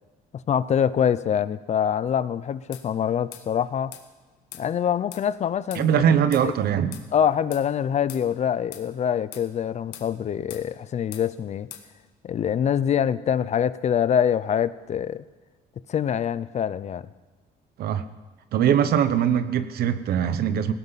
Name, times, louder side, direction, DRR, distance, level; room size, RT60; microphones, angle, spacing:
voice 1, 0.5-3.9 4.6-6.0 6.4-6.5 7.1-11.7 12.2-15.2 15.9-17.1, left 8 dB, 40° left, 16 dB, 0.6 m, -25 dB
sound 1, 2.7-2.9 3.3-3.5 3.9-4.1 4.5-4.7 5.1-5.3 5.7-5.9 6.3-6.5 6.9-7.1 7.5-7.7 8.1-8.3 8.7-8.9 9.3-9.5 9.9-10.1 10.5-10.7 11.1-11.3 11.7-11.9, left 11 dB, 90° left, 1.5 m, -41 dB
voice 2, 5.7-7.0 17.8-18.1 18.5-20.7, right 8 dB, 65° right, 11 dB, 1.1 m, -22 dB
19.0 x 17.0 x 4.1 m, 1.3 s
cardioid pair, 110°, 17 cm